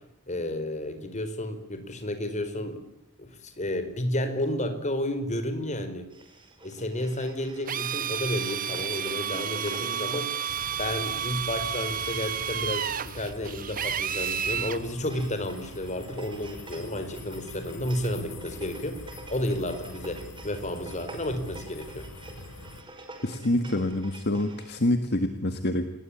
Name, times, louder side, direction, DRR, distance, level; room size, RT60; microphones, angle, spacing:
voice 1, 0.3-2.8 3.2-6.1 6.6-10.3 10.8-22.1, left 1 dB, 35° left, 9 dB, 4.6 m, -32 dB
sound 1, 6.1-24.8, right 2 dB, 20° right, 5.3 m, -48 dB
Drill, 7.7-14.8, right 8 dB, 40° right, 1.1 m, -31 dB
sound 2, 10.5-22.8, left 2 dB, 90° left, 3.2 m, -44 dB
voice 2, 23.2-25.8, left 1 dB, 50° left, 8 dB, 1.9 m, -26 dB
29.5 x 20.5 x 8.7 m, 0.77 s
head